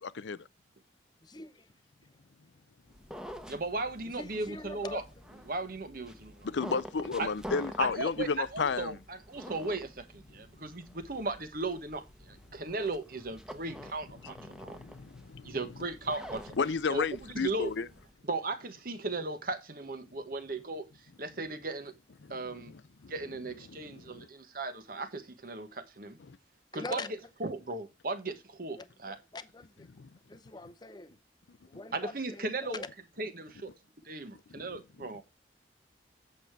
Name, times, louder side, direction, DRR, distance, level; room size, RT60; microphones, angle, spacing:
voice 1, 1.2-1.7 4.0-5.0 26.7-27.1 28.7-29.9 30.3-31.2 31.7-32.9, left 3 dB, 25° left, 0.7 m, -43 dB
sound 1, 2.9-18.1, equal, 5° right, 1.0 m, -48 dB
voice 2, 3.5-5.0 5.5-6.5 7.2-7.3 7.8-14.8 15.4-16.5 16.9-17.7 18.2-20.9 21.2-21.9 22.3-22.7 23.1-26.2 26.7-27.0 27.4-29.2 31.9-32.8 33.2-33.7 34.0-35.2, right 2 dB, 55° right, 1.3 m, -36 dB
voice 3, 6.4-9.0 14.5-15.6 16.6-17.9 23.0-23.1 23.7-24.3 26.3-26.4 30.0-30.1 34.6-34.7 35.0-35.1, left 5 dB, 90° left, 0.6 m, -32 dB
8.3 x 6.7 x 4.6 m
head